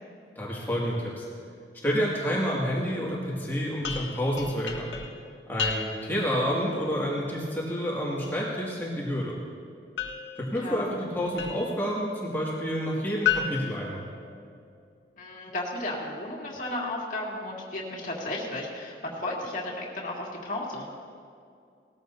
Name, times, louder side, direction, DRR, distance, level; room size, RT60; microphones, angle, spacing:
voice 1, 0.4-1.3 1.8-4.9 5.5-9.4 10.4-14.1, equal, 10° left, -6 dB, 2.2 m, -29 dB
sound 1, 3.8-6.2 10.0-11.8 13.2-14.7, left 7 dB, 90° left, 1.2 m, -33 dB
voice 2, 10.5-10.8 15.2-20.9, left 1 dB, 45° left, -3 dB, 2.3 m, -34 dB
19.0 x 14.0 x 2.7 m, 2.4 s
head